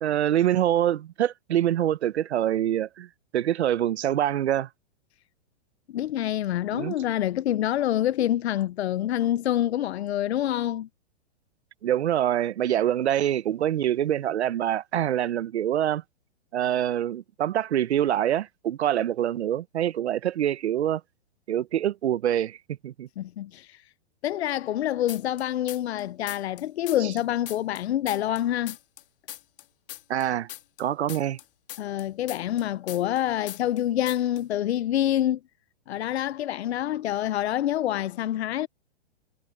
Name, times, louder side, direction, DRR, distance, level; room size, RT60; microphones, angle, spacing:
voice 1, 0.0-3.1 3.3-4.7 6.7-6.9 11.8-16.0 16.5-21.0 21.5-23.1 27.0-27.1 30.1-30.5 30.8-31.4, right 11 dB, 80° right, 0.9 m, -25 dB
voice 2, 5.9-10.9 23.2-23.8 24.2-28.8 31.8-35.4 35.9-38.7, left 12 dB, 70° left, 0.7 m, -26 dB
sound 1, 25.1-26.0 26.3-29.0 29.3-33.2 33.5-33.8 34.1-34.4, left 13 dB, 55° left, 2.1 m, -40 dB
hypercardioid pair, 155°, 33 cm